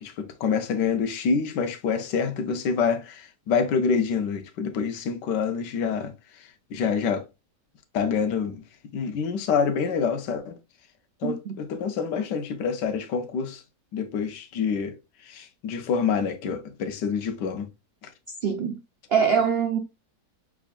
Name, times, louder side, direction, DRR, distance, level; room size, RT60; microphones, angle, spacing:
voice 1, 0.0-6.1 6.7-7.2 7.9-8.6 8.9-10.5 11.2-13.6 13.9-15.0 15.2-17.7 18.0-18.1, left 6 dB, 90° left, 1.4 m, -26 dB
voice 2, 18.4-18.8 19.1-19.8, right 7 dB, 85° right, 0.5 m, -23 dB
6.1 x 3.6 x 2.4 m
omnidirectional pair, 1.8 m